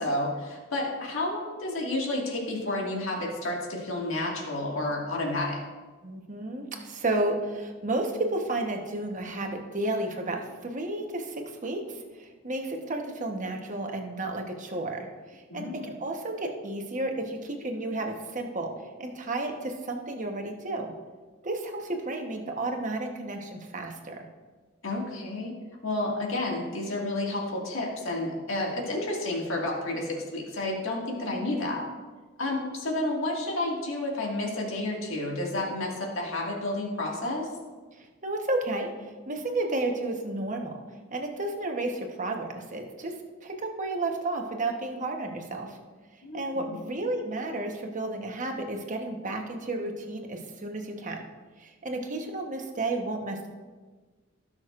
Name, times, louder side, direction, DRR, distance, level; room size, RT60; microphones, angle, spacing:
voice 1, 0.0-5.6 15.5-15.8 24.8-25.5 25.8-31.8 32.4-37.5 46.2-46.8, left 2 dB, 75° left, -2 dB, 2.0 m, -30 dB
voice 2, 6.0-18.7 19.0-20.9 21.4-24.3 31.3-31.7 37.9-40.8 41.1-45.8 46.3-51.2 51.6-53.5, right 2 dB, 40° right, 3 dB, 1.1 m, -32 dB
17.0 x 6.3 x 2.5 m, 1.3 s
head